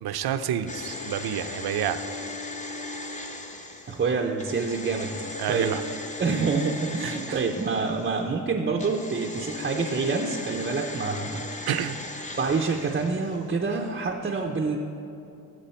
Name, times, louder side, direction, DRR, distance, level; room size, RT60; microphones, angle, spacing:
voice 1, 0.0-2.0 5.4-5.8 7.0-7.4 11.7-12.0, right 10 dB, 65° right, 11 dB, 0.6 m, -29 dB
sound 1, 0.7-8.3 8.8-13.5 13.7-13.8, left 2 dB, 20° left, 0.7 m, -37 dB
voice 2, 3.9-5.1 5.5-5.8 6.2-11.7 12.4-14.8, right 4 dB, 25° right, 1 dB, 0.5 m, -27 dB
16.5 x 7.6 x 4.3 m, 2.9 s
wide cardioid pair, 175°, 40 cm